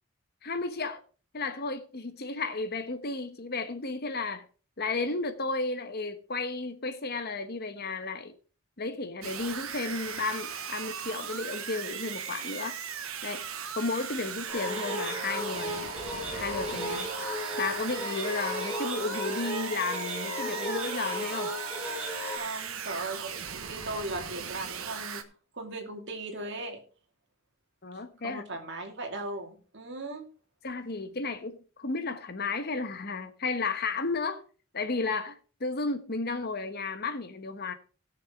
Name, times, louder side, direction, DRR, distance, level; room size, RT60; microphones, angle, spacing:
voice 1, 0.4-1.0 1.3-4.4 4.8-8.3 8.8-12.8 13.2-13.4 13.7-15.9 16.3-17.1 17.6-21.5 27.8-28.4 30.6-34.4 34.7-37.7, left 3 dB, 50° left, 1.2 m, -33 dB
sound 1, 9.2-25.2, right 7 dB, 80° right, 1.2 m, -38 dB
sound 2, 14.5-22.4, left 1 dB, 5° right, 3.3 m, -35 dB
voice 2, 22.4-23.3 23.6-25.2 25.5-26.8 28.2-30.3, right 2 dB, 55° right, 2.5 m, -37 dB
18.0 x 6.6 x 3.7 m
head